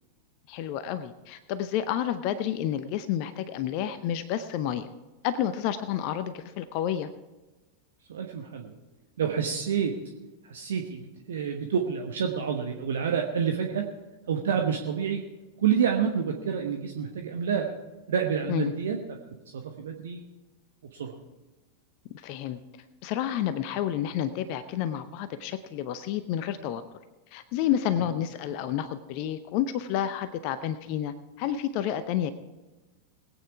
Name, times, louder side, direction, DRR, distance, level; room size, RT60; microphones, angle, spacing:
voice 1, 0.5-4.9 5.2-7.1 18.5-18.7 22.1-22.6 23.0-26.8 27.3-32.3, left 10 dB, 45° left, 12 dB, 0.7 m, -30 dB
voice 2, 8.1-8.7 9.2-9.9 10.4-13.9 14.3-15.2 15.6-17.7 18.1-19.0 19.5-20.2 20.9-21.1, right 7 dB, 60° right, 3 dB, 1.1 m, -28 dB
21.0 x 9.0 x 4.7 m, 1.1 s
figure-of-eight pair, 90°, 0 cm